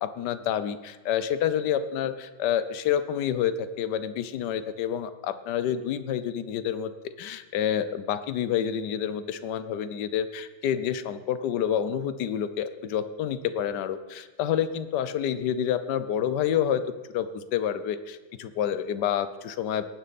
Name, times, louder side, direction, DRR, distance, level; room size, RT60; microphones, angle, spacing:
voice 1, 0.0-16.8 17.1-19.8, left 9 dB, 65° left, 12 dB, 1.1 m, -28 dB
19.0 x 9.7 x 4.1 m, 1.3 s
omnidirectional pair, 2.3 m